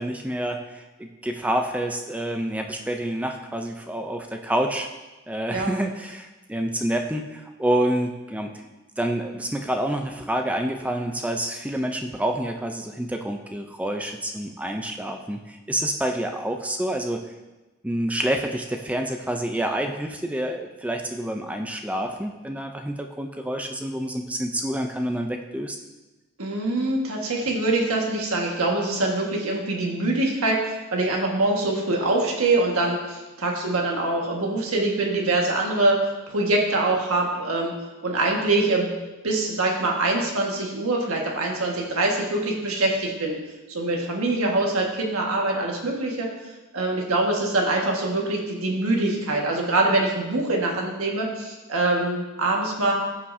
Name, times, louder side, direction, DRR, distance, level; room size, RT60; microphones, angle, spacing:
voice 1, 0.0-4.9 5.3-8.5 9.0-17.2 17.8-25.8, right 1 dB, 5° right, 4 dB, 0.4 m, -28 dB
voice 2, 26.4-37.7 38.0-38.9 39.2-43.4 43.7-46.3 46.7-52.9, right 2 dB, 85° right, -1 dB, 1.6 m, -24 dB
14.5 x 5.7 x 2.7 m, 1.1 s
head